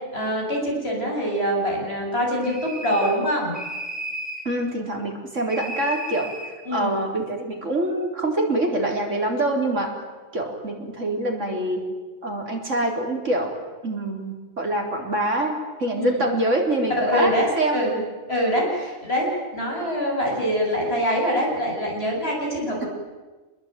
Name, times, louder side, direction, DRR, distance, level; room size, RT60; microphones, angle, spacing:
voice 1, 0.1-3.5 6.6-7.0 16.0-16.3 17.0-18.0 18.3-22.9, equal, 55° left, -2 dB, 8.4 m, -24 dB
sound 1, 2.4-3.2 3.5-4.5 5.5-6.5, right 1 dB, ahead, 5.9 m, -34 dB
voice 2, 4.4-6.3 6.7-9.9 10.3-11.8 12.2-13.5 13.8-17.8, right 1 dB, 80° right, 2 dB, 4.3 m, -25 dB
27.0 x 20.5 x 9.3 m, 1.3 s
omnidirectional pair, 1.3 m